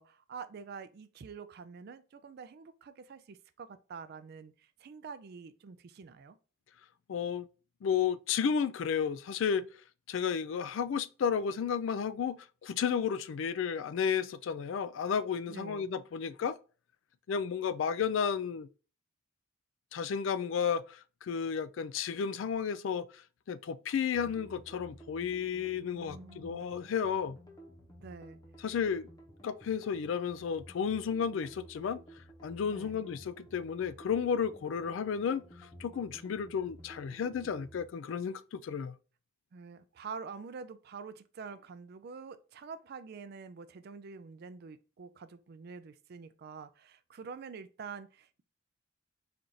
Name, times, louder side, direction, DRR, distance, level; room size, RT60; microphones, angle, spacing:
voice 1, 0.0-6.4 15.5-15.9 25.9-26.7 28.0-28.4 32.7-33.0 39.5-48.4, right 5 dB, 55° right, 0.4 m, -47 dB
voice 2, 7.1-7.5 7.8-9.7 10.1-16.6 17.3-18.7 19.9-23.1 23.5-27.4 28.6-29.1 29.4-32.0 32.4-35.4 35.8-38.9, left 7 dB, 70° left, 0.3 m, -32 dB
sound 1, 24.1-37.9, right 1 dB, 20° left, 0.8 m, -53 dB
4.4 x 2.5 x 3.9 m
head